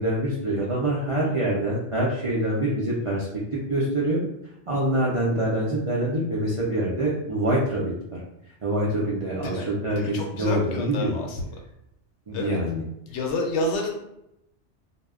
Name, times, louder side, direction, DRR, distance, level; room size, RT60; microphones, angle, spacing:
voice 1, 0.0-3.3 3.5-4.2 4.7-8.2 8.6-11.1 12.3-12.8, right 1 dB, 60° right, -6 dB, 0.3 m, -25 dB
voice 2, 9.4-11.5 12.3-12.6 13.1-13.9, left 2 dB, 80° left, 1 dB, 0.9 m, -29 dB
2.1 x 2.0 x 3.5 m, 0.84 s
omnidirectional pair, 1.2 m